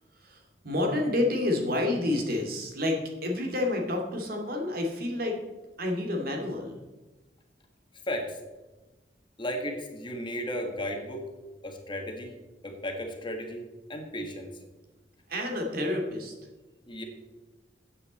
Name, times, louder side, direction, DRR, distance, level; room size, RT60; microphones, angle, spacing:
voice 1, 0.1-5.4 5.8-6.8 15.3-16.3, left 2 dB, 55° right, 1 dB, 2.5 m, -29 dB
voice 2, 8.0-8.4 9.4-11.3 11.6-12.4 12.6-13.6 13.9-14.6 16.9-17.0, equal, 30° left, 3 dB, 1.6 m, -34 dB
13.5 x 8.5 x 4.2 m, 1.1 s
head